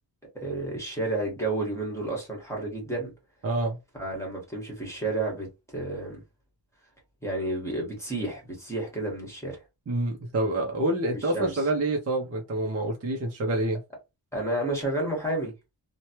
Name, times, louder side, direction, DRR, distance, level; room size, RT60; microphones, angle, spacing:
voice 1, 0.3-3.1 3.9-6.2 7.2-9.6 11.1-11.6 14.3-15.5, right 2 dB, 5° left, 1.3 m, -31 dB
voice 2, 3.4-3.8 9.9-13.8, right 2 dB, 35° right, 0.6 m, -27 dB
3.1 x 2.1 x 2.8 m
wide cardioid pair, 175°, 45 cm